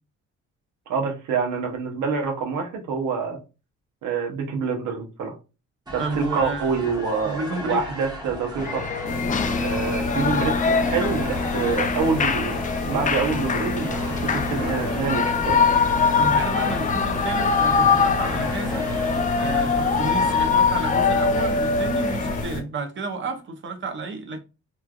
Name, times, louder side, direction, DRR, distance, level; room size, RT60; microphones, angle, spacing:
voice 1, 0.9-3.4 4.0-5.3 5.9-8.8 9.6-12.6 12.9-15.6, right 5 dB, 80° right, 0.8 m, -26 dB
sound 1, 5.9-20.5, right 1 dB, 15° right, 1.0 m, -37 dB
voice 2, 6.0-6.7 7.2-7.8 16.2-18.9 19.4-24.4, right 3 dB, 40° right, 0.7 m, -31 dB
Shout / Cheering, 8.6-22.4, left 5 dB, 25° left, 0.4 m, -24 dB
sound 2, 9.0-22.6, left 2 dB, 75° left, 1.2 m, -29 dB
3.1 x 2.3 x 2.3 m
cardioid pair, 90°, 30 cm